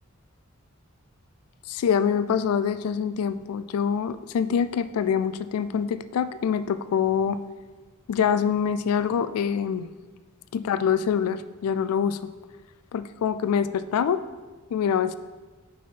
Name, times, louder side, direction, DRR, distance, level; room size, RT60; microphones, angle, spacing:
voice 1, 1.7-7.4 8.1-9.9 10.5-12.3 12.9-14.2 14.7-15.1, left 7 dB, 90° left, 14 dB, 0.3 m, -25 dB
5.5 x 4.6 x 4.4 m, 1.3 s
head